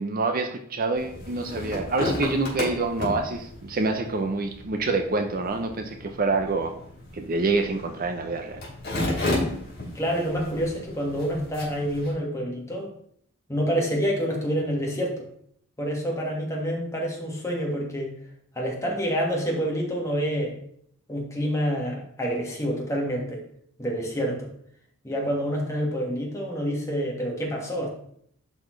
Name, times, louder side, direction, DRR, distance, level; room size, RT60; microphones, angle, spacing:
voice 1, 0.0-6.7 7.1-8.6, right 3 dB, 45° right, 6 dB, 0.6 m, -26 dB
sound 1, 1.0-12.1, left 1 dB, 55° left, 3.4 m, -33 dB
voice 2, 10.0-12.9 13.5-15.3 15.8-18.1 18.6-20.6 21.1-23.4 23.8-24.5 25.0-27.9, equal, 15° left, -2 dB, 1.6 m, -27 dB
11.0 x 4.2 x 3.2 m, 0.67 s
head